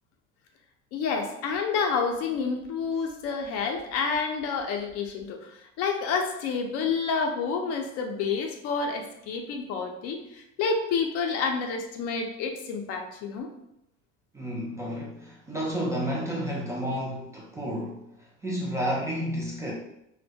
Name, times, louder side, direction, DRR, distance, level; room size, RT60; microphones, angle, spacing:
voice 1, 0.9-13.5, left 5 dB, 55° left, 4 dB, 0.4 m, -29 dB
voice 2, 14.3-19.7, equal, 10° right, -3 dB, 0.3 m, -31 dB
2.1 x 2.1 x 2.6 m, 0.83 s
cardioid pair, 130°, 29 cm